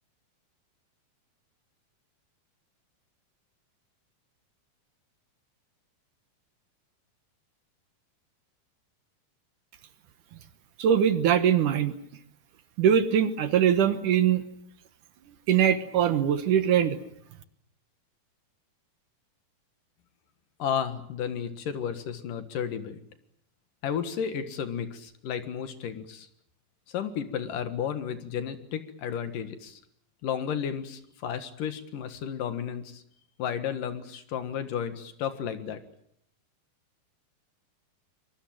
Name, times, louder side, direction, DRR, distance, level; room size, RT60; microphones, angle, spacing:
voice 1, 10.8-11.9 12.8-14.4 15.5-17.0, right 9 dB, 65° right, 11 dB, 2.5 m, -22 dB
voice 2, 20.6-23.0 23.8-26.3 26.9-29.8 30.2-33.0 33.4-35.8, left 8 dB, 65° left, 10 dB, 3.1 m, -33 dB
24.0 x 23.0 x 8.9 m, 0.71 s
omnidirectional pair, 4.3 m